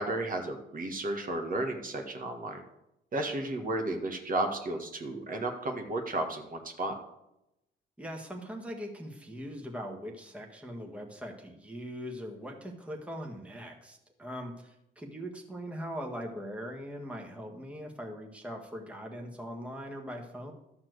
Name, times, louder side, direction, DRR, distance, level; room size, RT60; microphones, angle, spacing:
voice 1, 0.0-2.6 3.1-6.9, right 2 dB, 45° right, 3 dB, 1.7 m, -33 dB
voice 2, 8.0-20.5, equal, 5° right, 1 dB, 1.7 m, -41 dB
12.0 x 4.4 x 7.9 m, 0.86 s
cardioid pair, 90°, 20 cm